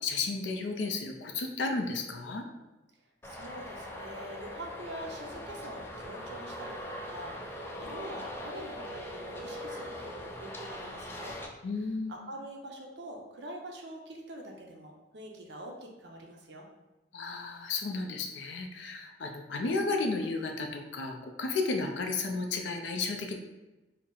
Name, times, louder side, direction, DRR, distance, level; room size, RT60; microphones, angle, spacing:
voice 1, 0.0-2.4 11.6-12.2 17.1-23.4, left 3 dB, 90° left, 4 dB, 0.4 m, -33 dB
Traffic noise roadway noise, 3.2-11.5, left 1 dB, 15° left, 0.4 m, -41 dB
voice 2, 3.2-11.4 12.1-16.7, right 1 dB, 70° right, 1 dB, 0.7 m, -45 dB
4.3 x 2.0 x 3.8 m, 1.1 s
head